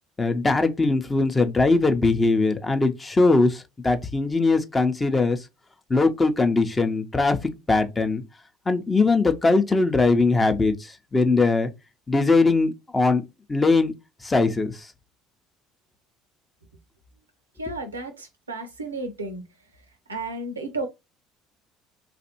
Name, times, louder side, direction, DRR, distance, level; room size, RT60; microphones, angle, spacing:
voice 1, 0.2-5.4 5.9-7.4 7.7-8.2 8.7-10.7 11.1-11.7 12.1-13.2 13.5-13.9 14.2-14.7, left 3 dB, 20° left, 0.6 m, -20 dB
voice 2, 17.6-19.4 20.1-20.9, right 2 dB, 85° right, 0.5 m, -32 dB
3.2 x 2.5 x 2.8 m
figure-of-eight pair, 60°, 0 cm